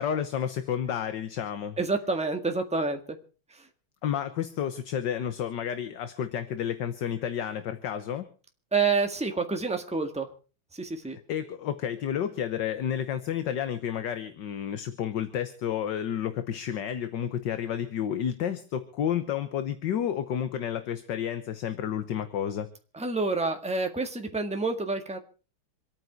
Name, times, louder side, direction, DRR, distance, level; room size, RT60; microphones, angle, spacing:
voice 1, 0.0-1.8 4.0-8.3 11.1-22.7, left 9 dB, 60° left, 10 dB, 1.6 m, -31 dB
voice 2, 1.8-3.0 8.7-10.3 10.7-11.2 22.9-25.2, right 4 dB, 5° right, 5 dB, 1.5 m, -28 dB
26.5 x 9.2 x 4.7 m, 0.36 s
omnidirectional pair, 2.3 m